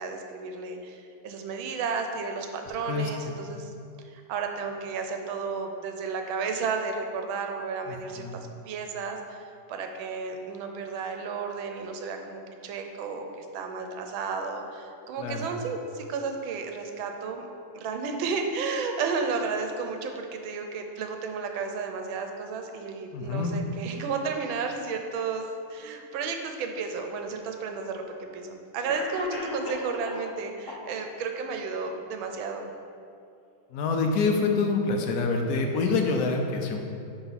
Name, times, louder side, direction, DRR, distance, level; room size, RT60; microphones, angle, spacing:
voice 1, 0.0-3.7 4.0-17.5 17.7-32.7, right 4 dB, 75° right, 4 dB, 1.4 m, -33 dB
voice 2, 7.9-8.3 15.2-15.5 23.1-23.5 33.7-36.8, left 4 dB, 70° left, 3 dB, 0.9 m, -26 dB
Cough, 28.3-28.4 28.9-30.3 30.7-31.3, left 1 dB, 50° left, 1.2 m, -37 dB
9.7 x 3.4 x 4.1 m, 2.5 s
omnidirectional pair, 2.3 m